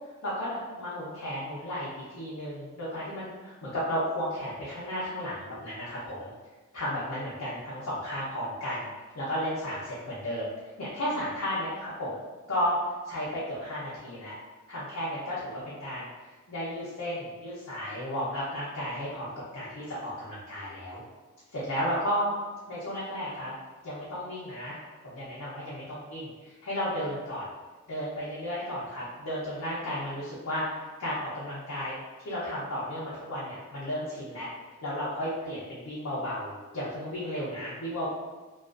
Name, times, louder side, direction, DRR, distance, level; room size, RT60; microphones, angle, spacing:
voice 1, 0.2-6.3 6.7-10.5 10.8-12.2 12.5-12.8 13.0-14.4 14.7-16.1 16.5-21.0 21.5-22.3 22.7-23.5 23.8-24.8 25.0-27.5 27.9-34.5 34.8-38.1, equal, 85° left, -9 dB, 0.6 m, -33 dB
2.4 x 2.3 x 2.4 m, 1.2 s
head